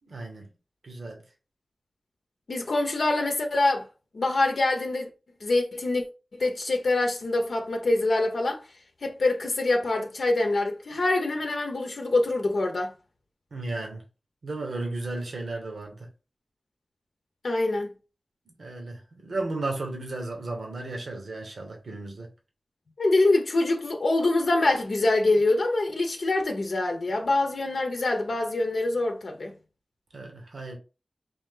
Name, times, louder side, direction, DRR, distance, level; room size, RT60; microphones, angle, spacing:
voice 1, 0.0-0.5 0.8-1.2 13.5-14.0 14.4-16.1 18.6-22.3 30.1-30.8, right 2 dB, 85° right, 1.1 m, -34 dB
voice 2, 2.5-3.9 4.1-5.1 5.4-6.0 6.3-8.6 9.0-12.9 17.4-17.9 23.0-29.5, left 2 dB, 80° left, 0.7 m, -25 dB
3.5 x 2.7 x 3.7 m
cardioid pair, 45°, 0 cm